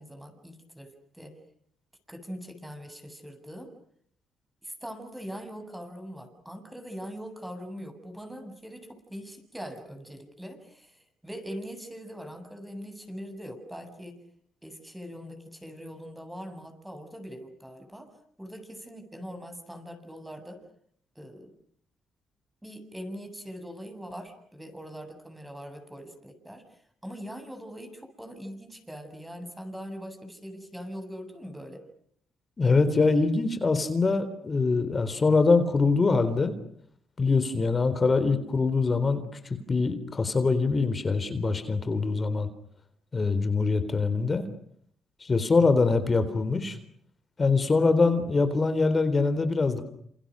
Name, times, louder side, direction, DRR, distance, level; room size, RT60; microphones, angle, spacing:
voice 1, 0.0-1.4 2.1-3.7 4.6-14.2 14.6-18.1 18.4-20.6 21.2-21.5 22.6-31.8, equal, 5° right, 6 dB, 7.4 m, -42 dB
voice 2, 32.6-36.5 37.2-42.5 43.1-44.4 45.2-46.8 47.4-49.8, left 4 dB, 30° left, 11 dB, 3.9 m, -24 dB
29.5 x 28.0 x 6.5 m, 0.67 s
cardioid pair, 90°, 0 cm